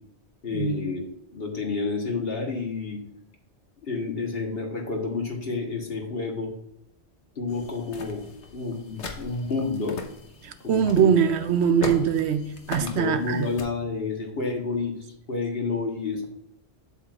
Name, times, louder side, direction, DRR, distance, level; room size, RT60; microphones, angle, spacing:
voice 1, 0.4-3.0 3.8-6.5 7.3-8.2 8.5-10.0 10.6-11.1 12.8-14.9 15.3-16.3, left 4 dB, 60° left, 1.5 m, -29 dB
sound 1, 7.5-13.6, left 4 dB, 80° left, 1.3 m, -39 dB
voice 2, 10.4-13.5, right 8 dB, 75° right, 0.9 m, -22 dB
8.0 x 7.8 x 2.4 m
omnidirectional pair, 1.1 m